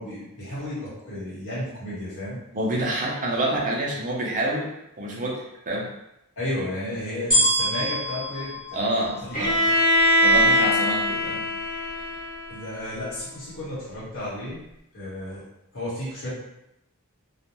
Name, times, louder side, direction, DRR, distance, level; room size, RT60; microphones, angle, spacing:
voice 1, 0.0-2.4 6.4-8.6 9.2-9.4 12.5-14.6 14.9-15.4 15.7-16.3, left 1 dB, 60° left, -9 dB, 1.1 m, -33 dB
voice 2, 2.5-4.7 5.0-5.9 8.7-9.5 10.2-11.4, right 1 dB, 35° right, -2 dB, 0.6 m, -27 dB
sound 1, 7.3-9.7 10.3-10.4, equal, ahead, 1.2 m, -25 dB
Bowed string instrument, 9.3-13.2, equal, 40° left, 0.8 m, -22 dB
2.4 x 2.2 x 2.9 m, 0.83 s
head